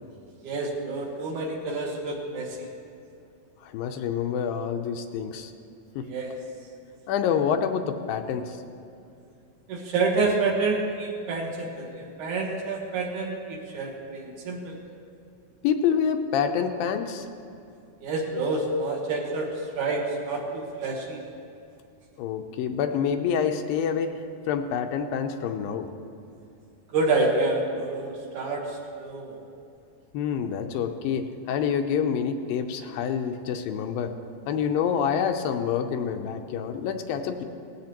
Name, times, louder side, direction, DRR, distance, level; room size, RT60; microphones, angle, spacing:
voice 1, 0.4-2.7 6.0-6.3 9.7-14.8 18.0-21.2 26.9-29.4, right 3 dB, 65° right, -1 dB, 2.7 m, -28 dB
voice 2, 3.7-5.5 6.0-6.1 7.1-8.6 15.6-17.3 22.2-24.1 24.5-25.9 30.1-34.1 34.5-37.4, left 7 dB, 85° left, 6 dB, 2.5 m, -27 dB
18.5 x 14.5 x 3.0 m, 2.6 s
omnidirectional pair, 4.1 m